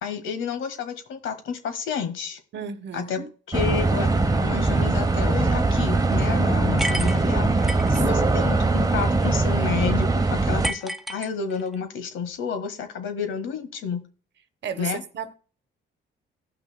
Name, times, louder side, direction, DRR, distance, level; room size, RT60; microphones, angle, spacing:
voice 1, 0.0-2.4 2.9-4.1 4.4-7.5 7.9-14.0 14.8-15.0, left 6 dB, 75° left, 1.6 m, -30 dB
voice 2, 2.5-3.3 8.1-8.6 14.6-15.3, right 7 dB, 65° right, 1.1 m, -35 dB
sound 1, 3.5-10.7, right 3 dB, 20° right, 0.9 m, -21 dB
sound 2, 6.8-8.0 10.6-11.8, equal, ahead, 0.6 m, -31 dB
17.0 x 5.9 x 2.2 m
cardioid pair, 90°, 20 cm